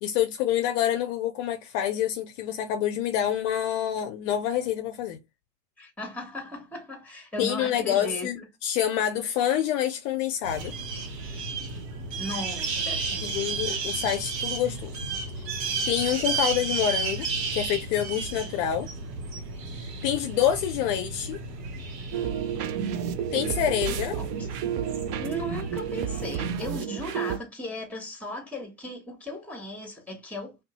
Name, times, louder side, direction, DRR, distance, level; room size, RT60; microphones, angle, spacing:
voice 1, 0.0-5.2 7.4-8.4 8.6-10.8 13.2-15.0 15.4-15.5 15.9-18.9 19.7-21.4 23.3-24.2, left 10 dB, 55° left, 0.5 m, -27 dB
voice 2, 5.8-8.5 12.1-13.7 23.9-24.5 25.2-30.6, left 1 dB, 5° left, 1.0 m, -37 dB
sound 1, 10.4-26.7, right 4 dB, 85° right, 0.8 m, -33 dB
sound 2, 22.1-27.4, right 10 dB, 45° right, 0.4 m, -31 dB
2.6 x 2.0 x 2.8 m
hypercardioid pair, 85°, 47 cm